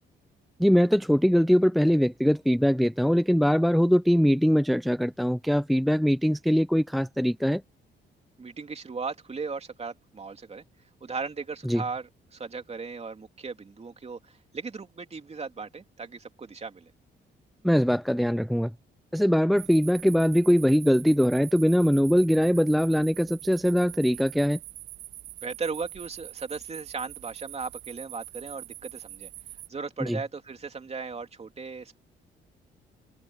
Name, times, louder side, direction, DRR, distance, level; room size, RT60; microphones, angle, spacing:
voice 1, 0.6-7.6 11.7-11.8 17.6-18.7 19.1-24.6 30.0-30.2, equal, ahead, 0.5 m, -22 dB
voice 2, 8.4-10.6 11.0-16.9 25.4-29.3 29.7-32.0, right 4 dB, 30° right, 3.1 m, -37 dB
sound 1, 19.6-29.7, right 14 dB, 90° right, 7.6 m, -44 dB
cardioid pair, 90°, 20 cm